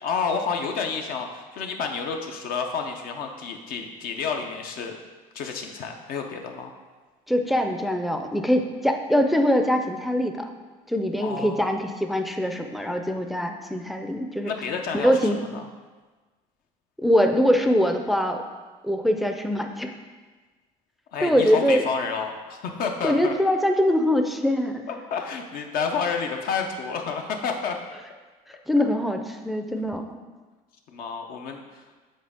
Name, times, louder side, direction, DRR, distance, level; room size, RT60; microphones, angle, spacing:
voice 1, 0.0-5.0 5.3-6.7 11.2-11.7 14.4-15.7 21.1-23.3 24.9-27.8 30.9-31.8, left 5 dB, 65° left, 3 dB, 0.7 m, -30 dB
voice 2, 7.3-10.5 10.9-14.5 15.0-15.4 17.0-18.4 18.8-19.9 21.2-21.8 23.0-24.8 28.7-30.0, equal, ahead, 4 dB, 0.4 m, -23 dB
7.5 x 4.0 x 3.6 m, 1.3 s
cardioid pair, 125°, 16 cm